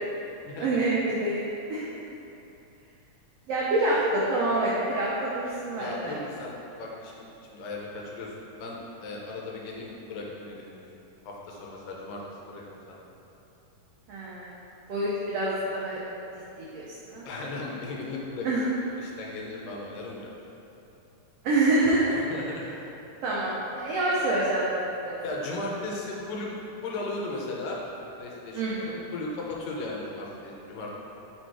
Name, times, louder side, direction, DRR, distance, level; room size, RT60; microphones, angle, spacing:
voice 1, 0.6-1.8 3.5-6.1 14.1-14.5 14.9-16.0 16.6-17.3 18.4-18.6 21.4-22.2 23.2-25.2 28.5-29.1, right 2 dB, 90° right, -7 dB, 1.3 m, -27 dB
voice 2, 5.8-7.2 7.5-8.3 8.6-10.8 11.2-12.6 12.9-13.0 17.3-18.5 18.8-20.3 22.1-22.7 25.2-27.8 28.2-31.0, left 2 dB, 85° left, -3 dB, 2.5 m, -36 dB
5.4 x 4.3 x 4.6 m, 2.9 s
omnidirectional pair, 3.8 m